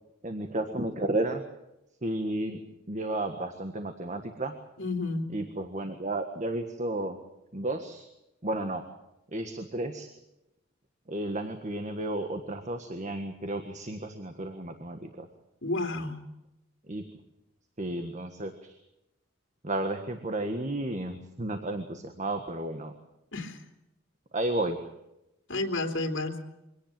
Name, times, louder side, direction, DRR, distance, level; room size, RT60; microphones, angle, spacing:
voice 1, 0.2-1.4 2.0-2.6 2.9-4.5 5.3-7.2 7.5-8.1 8.4-8.8 9.3-10.1 11.1-15.3 16.9-17.0 17.8-18.8 19.6-22.9 24.3-24.8, right 1 dB, 40° right, 6 dB, 1.6 m, -32 dB
voice 2, 4.8-5.3 15.6-16.2 23.3-23.6 25.5-26.4, left 2 dB, 85° left, 4 dB, 3.4 m, -31 dB
24.0 x 18.0 x 7.7 m, 0.88 s
head